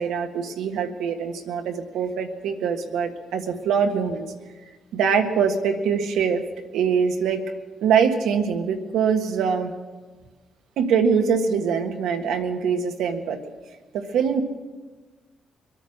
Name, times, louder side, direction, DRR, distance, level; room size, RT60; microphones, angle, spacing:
voice 1, 0.0-4.3 4.9-6.4 6.7-7.4 7.8-9.7 10.8-13.4 13.9-14.4, right 6 dB, 80° right, 5 dB, 1.5 m, -23 dB
22.5 x 9.2 x 6.5 m, 1.3 s
supercardioid pair, 70°, 0 cm